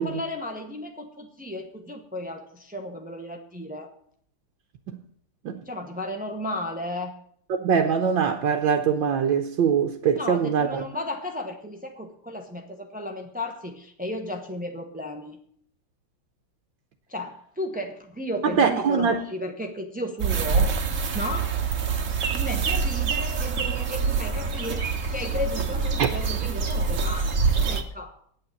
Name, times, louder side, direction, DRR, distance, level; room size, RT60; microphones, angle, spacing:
voice 1, 0.0-3.9 5.7-7.1 10.2-15.4 17.1-20.8 21.1-21.5 22.3-24.9 25.1-28.2, left 1 dB, 10° right, 3 dB, 0.3 m, -34 dB
voice 2, 7.5-10.8 18.4-19.2 26.0-26.1, right 7 dB, 65° right, 4 dB, 1.6 m, -23 dB
sound 1, 20.2-27.8, right 5 dB, 45° right, 1.3 m, -25 dB
9.0 x 8.7 x 9.3 m, 0.65 s
omnidirectional pair, 2.4 m